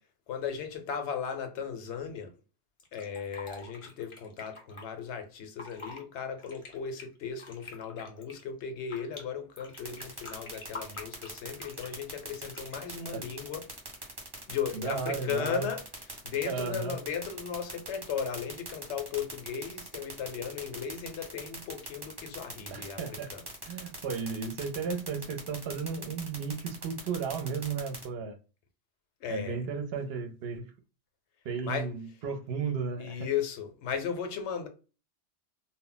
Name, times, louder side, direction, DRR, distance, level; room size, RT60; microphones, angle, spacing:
voice 1, 0.3-2.3 2.9-13.7 14.5-23.4 29.2-29.6 31.6-31.9 33.0-34.7, left 7 dB, 80° left, 0.9 m, -36 dB
Fill (with liquid), 2.8-4.8 5.4-6.0 6.4-9.2 9.6-12.0 12.5-12.9, left 2 dB, 35° left, 0.6 m, -46 dB
sound 1, 9.8-28.0, right 2 dB, 30° right, 0.9 m, -41 dB
voice 2, 14.7-15.7 16.4-16.9 22.7-23.3 23.7-28.4 29.3-30.7 31.4-33.2, right 5 dB, 70° right, 0.7 m, -34 dB
2.1 x 2.0 x 3.7 m
omnidirectional pair, 1.2 m